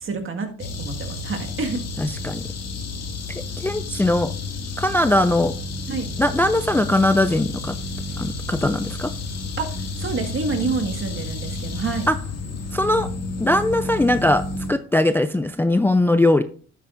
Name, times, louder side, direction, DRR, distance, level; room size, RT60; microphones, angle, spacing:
voice 1, 0.0-1.8 5.9-6.1 9.6-12.1, right 4 dB, 45° right, 4 dB, 1.8 m, -28 dB
sound 1, 0.6-14.7, left 2 dB, 55° left, 2.1 m, -31 dB
voice 2, 2.0-2.4 3.6-4.3 4.8-5.5 6.2-7.8 8.2-9.1 12.1-12.2 12.7-13.1 13.4-14.4 14.7-16.4, left 1 dB, 5° left, 11 dB, 0.4 m, -20 dB
11.5 x 8.3 x 2.5 m, 0.42 s
cardioid pair, 90°, 30 cm